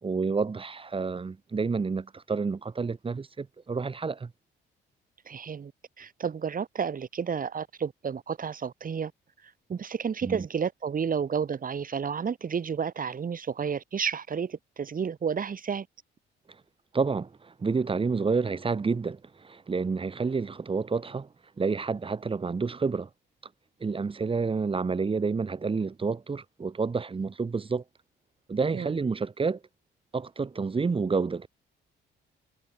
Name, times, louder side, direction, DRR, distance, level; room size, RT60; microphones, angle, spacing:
voice 1, 0.0-4.3 10.2-10.5 16.9-21.3 21.6-23.1 23.8-27.8 28.5-29.6 30.1-31.5, right 4 dB, 25° right, 1.4 m, -29 dB
voice 2, 5.3-5.7 6.0-9.1 9.4-15.9 28.7-29.0, right 6 dB, 45° right, 3.5 m, -31 dB
cardioid pair, 90°, 20 cm